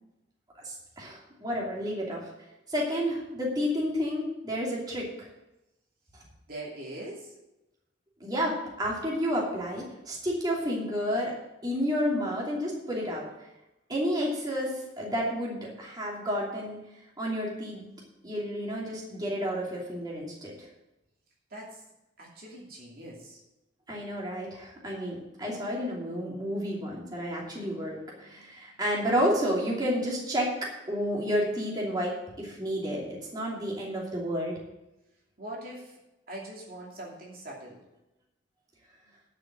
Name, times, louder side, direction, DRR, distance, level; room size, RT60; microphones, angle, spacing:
voice 1, 0.6-2.3 2.7-5.3 8.2-11.4 11.6-13.3 13.9-16.8 17.2-17.9 18.2-20.7 23.9-34.6, equal, 20° right, -4 dB, 2.8 m, -31 dB
voice 2, 6.5-7.3 21.5-21.8 22.2-23.4 35.4-36.0 36.3-37.8, right 1 dB, 55° right, -3 dB, 2.7 m, -42 dB
11.5 x 5.7 x 7.7 m, 0.93 s
head